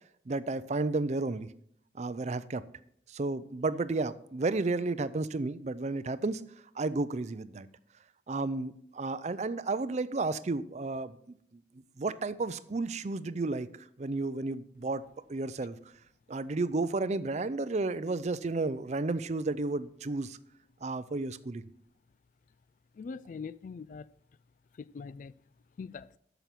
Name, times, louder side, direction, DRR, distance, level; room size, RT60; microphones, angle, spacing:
voice 1, 0.3-1.5 1.9-2.6 3.1-6.4 6.8-7.7 8.3-11.6 12.0-15.0 15.3-15.8 16.3-20.4 20.8-21.6, right 3 dB, 40° right, 0.5 m, -32 dB
voice 2, 23.0-24.1 24.8-25.3 25.8-26.2, left 5 dB, 45° left, 0.3 m, -42 dB
9.0 x 7.0 x 5.9 m
head